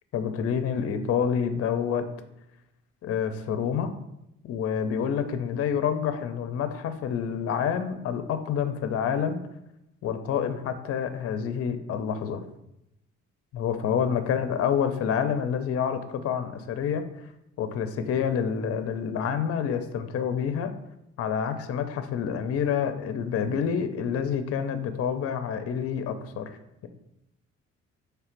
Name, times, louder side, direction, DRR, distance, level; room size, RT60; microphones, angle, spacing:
voice 1, 0.1-2.0 3.0-3.9 4.4-9.4 10.0-12.4 13.5-17.1 17.6-20.7 21.2-26.6, left 7 dB, 50° left, 9 dB, 0.4 m, -28 dB
3.3 x 2.4 x 4.4 m, 0.85 s
cardioid pair, 90°, 30 cm